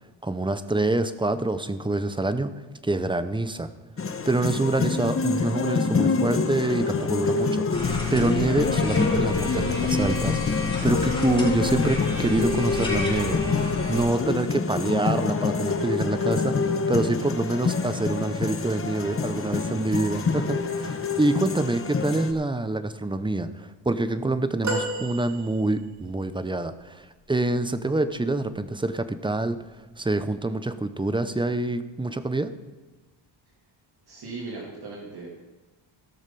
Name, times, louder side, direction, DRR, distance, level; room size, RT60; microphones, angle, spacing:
voice 1, 0.2-2.5 2.8-3.7 4.3-29.6 30.0-32.5, right 2 dB, 10° right, 11 dB, 0.6 m, -26 dB
sound 1, 4.0-22.3, left 4 dB, 30° left, 0.9 m, -26 dB
sound 2, 7.7-14.1, left 4 dB, 10° left, 4.2 m, -31 dB
voice 2, 20.8-21.2 21.5-21.7 34.1-35.3, right 3 dB, 50° right, -3 dB, 2.2 m, -39 dB
sound 3, 24.6-26.1 28.4-28.6 29.9-30.0, right 1 dB, 35° right, 2.1 m, -32 dB
16.0 x 6.4 x 5.2 m, 1.2 s
cardioid pair, 100°, 48 cm